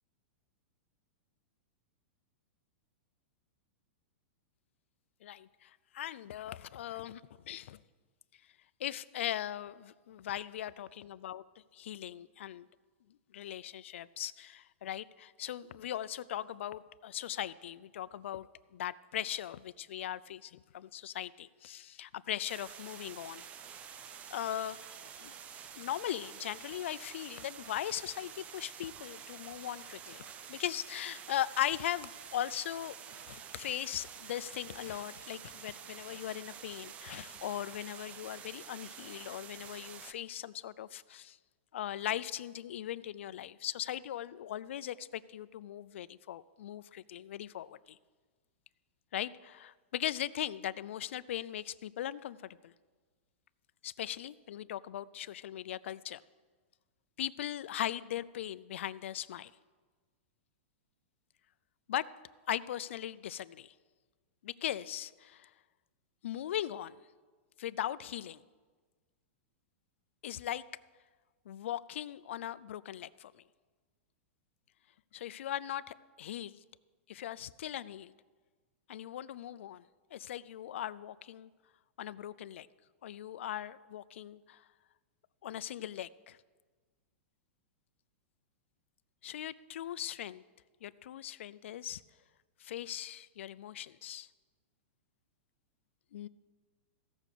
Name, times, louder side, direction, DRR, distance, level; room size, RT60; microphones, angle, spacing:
voice 1, 5.2-7.8 8.8-11.4 11.7-12.7 13.3-18.5 18.7-23.4 24.3-24.9 25.2-25.3 25.8-33.0 33.3-41.4 41.7-48.0 49.1-52.7 53.8-56.2 57.2-59.5 61.9-62.1 62.5-63.7 64.4-65.5 66.2-67.0 67.6-68.4 70.2-70.6 71.5-73.4 75.1-76.6 77.1-78.1 78.9-79.8 80.1-81.5 82.0-82.7 83.0-84.6 85.4-86.4 89.2-90.4 90.8-92.0 92.6-94.3 96.1-96.3, left 11 dB, 75° left, 16 dB, 0.4 m, -39 dB
sound 1, 22.5-40.1, right 8 dB, 20° right, 0.5 m, -49 dB
15.5 x 6.2 x 6.7 m, 1.4 s
supercardioid pair, 160°, 7 cm